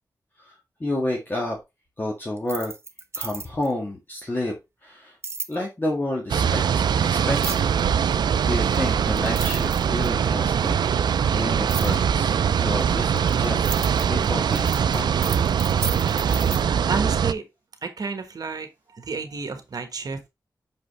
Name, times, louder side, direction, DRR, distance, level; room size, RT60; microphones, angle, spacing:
voice 1, 0.4-1.6 2.0-2.7 3.2-4.5 4.8-5.1 5.5-6.8 7.1-7.7 8.4-10.7 11.3-12.4 12.6-13.8 14.1-15.1, left 1 dB, 30° left, 1.8 m, -30 dB
sound 1, 2.4-3.7 5.2-5.5 7.3-7.8 8.7-8.8 9.2-10.3 11.7-12.0 12.8-16.6, right 3 dB, 35° right, 0.7 m, -34 dB
sound 2, 6.3-17.3, right 7 dB, 85° right, 0.4 m, -22 dB
voice 2, 16.7-17.4 17.8-20.3, right 4 dB, 60° right, 1.3 m, -31 dB
6.1 x 5.1 x 3.2 m
wide cardioid pair, 85°, 7 cm